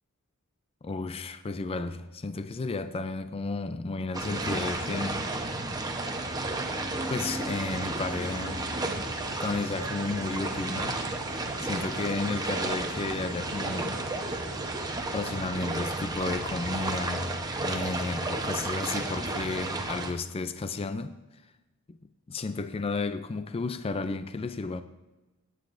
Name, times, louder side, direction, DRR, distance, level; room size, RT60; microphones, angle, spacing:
voice 1, 0.8-5.2 7.1-8.7 9.4-14.0 15.1-21.2 21.9-22.0 22.3-24.8, left 3 dB, 25° left, 0.4 m, -33 dB
sound 1, 4.1-20.1, right 2 dB, 15° right, 0.9 m, -32 dB
sound 2, 6.9-14.9, right 3 dB, 90° right, 1.2 m, -46 dB
17.0 x 9.0 x 2.6 m
head